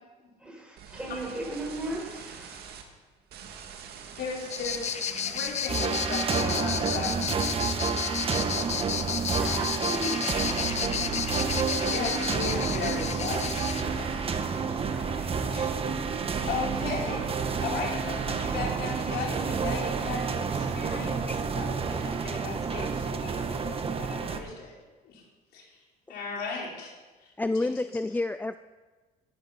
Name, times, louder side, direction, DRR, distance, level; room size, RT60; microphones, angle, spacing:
voice 1, 0.4-2.6 8.6-11.9 14.7-15.4, right 1 dB, 5° right, -1 dB, 5.3 m, -38 dB
sound 1, 0.8-2.8 3.3-9.9 10.2-10.7, right 7 dB, 70° right, 2.1 m, -45 dB
voice 2, 4.2-7.6 11.9-14.2 15.4-15.7 16.4-17.3 17.6-21.2 21.5-24.7 25.0-25.2 25.5-25.8 26.1-26.9 27.5-27.7, left 4 dB, 70° left, -2 dB, 4.6 m, -36 dB
sound 2, 4.5-13.8, left 8 dB, 40° left, 0.7 m, -32 dB
sound 3, 5.7-24.4, right 5 dB, 35° right, 1.5 m, -30 dB
voice 3, 27.4-28.6, left 2 dB, 10° left, 12 dB, 0.4 m, -29 dB
14.0 x 12.5 x 5.9 m, 1.3 s
cardioid pair, 110°, 17 cm